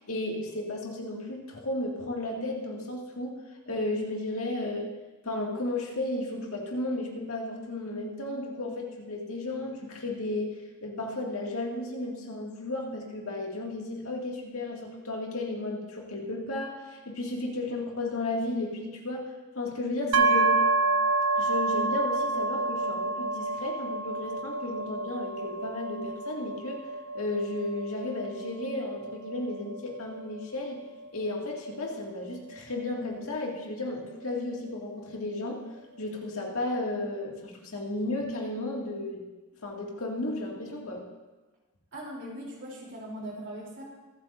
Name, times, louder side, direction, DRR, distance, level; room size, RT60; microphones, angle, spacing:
voice 1, 0.0-4.9 5.2-10.5 10.8-20.6 21.4-26.8 27.1-30.8 31.1-35.6 36.0-39.2 39.6-41.0, left 2 dB, 70° left, -1 dB, 2.1 m, -34 dB
sound 1, 20.1-33.8, right 2 dB, 70° right, 0.8 m, -29 dB
voice 2, 41.9-43.8, right 1 dB, 55° right, -3 dB, 3.4 m, -40 dB
24.0 x 8.5 x 2.7 m, 1.2 s
head